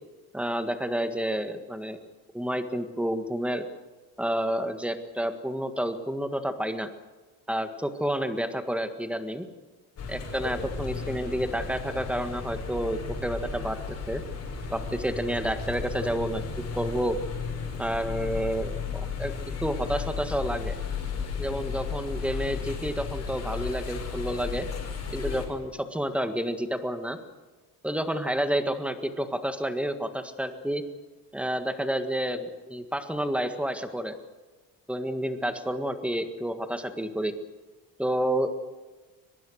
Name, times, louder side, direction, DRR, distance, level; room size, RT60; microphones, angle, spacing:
voice 1, 0.3-2.0 2.3-3.7 4.2-6.9 7.5-9.5 10.1-13.8 14.1-14.2 14.7-16.4 16.7-17.2 17.8-19.3 19.6-20.7 21.4-24.7 25.1-27.2 27.8-30.8 31.3-34.1 34.9-37.3 38.0-38.5, equal, 5° right, 8 dB, 1.7 m, -29 dB
sound 1, 10.0-25.5, left 5 dB, 40° left, 6.6 m, -34 dB
23.5 x 21.5 x 6.5 m, 1.2 s
cardioid pair, 140°, 37 cm